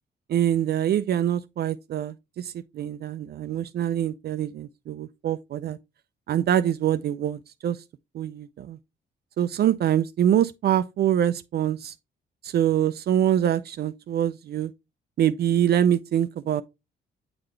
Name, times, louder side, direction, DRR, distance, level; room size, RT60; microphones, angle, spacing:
voice 1, 0.3-5.8 6.3-7.8 8.1-8.8 9.4-11.9 12.4-14.7 15.2-16.6, right 10 dB, 55° right, 0.4 m, -24 dB
7.9 x 3.9 x 3.1 m
cardioid pair, 90°, 20 cm